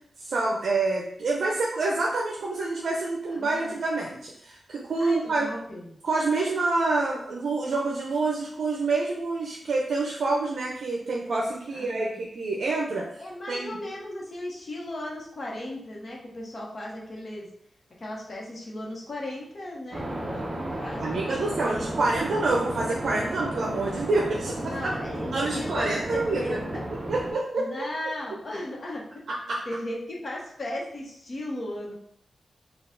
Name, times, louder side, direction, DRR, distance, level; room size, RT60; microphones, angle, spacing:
voice 1, 0.2-5.5 6.0-13.1 13.5-13.8 21.0-24.7 25.3-26.6 27.1-27.9 29.3-29.6, right 3 dB, 75° right, -3 dB, 0.6 m, -27 dB
voice 2, 3.3-3.7 5.0-5.9 11.7-12.1 13.2-17.5 18.0-22.2 24.6-26.8 27.6-29.0 29.7-31.9, left 1 dB, 45° left, -2 dB, 1.0 m, -36 dB
sound 1, 19.9-27.3, right 1 dB, 30° right, 0.7 m, -33 dB
4.3 x 2.4 x 3.8 m, 0.69 s
wide cardioid pair, 125°, 0 cm